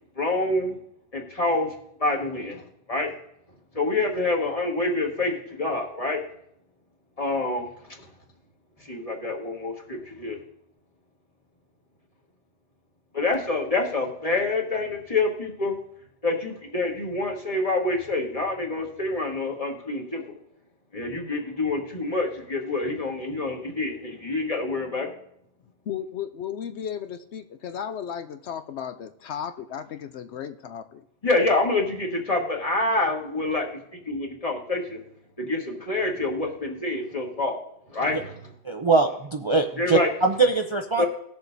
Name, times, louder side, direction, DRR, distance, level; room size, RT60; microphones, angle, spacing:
voice 1, 0.2-0.7 1.1-1.7 2.0-2.6 2.9-3.1 3.8-6.2 7.2-7.7 8.9-10.4 13.1-15.7 16.2-20.2 20.9-25.1 31.2-33.7 34.1-35.0 35.4-37.6 37.9-38.3 39.8-40.1 41.0-41.1, left 2 dB, 30° left, 0 dB, 1.7 m, -26 dB
voice 2, 25.9-31.0, left 8 dB, 75° left, 9 dB, 0.9 m, -35 dB
voice 3, 38.6-41.0, right 3 dB, 35° right, 4 dB, 0.6 m, -22 dB
19.0 x 6.9 x 2.7 m, 0.73 s
omnidirectional pair, 1.2 m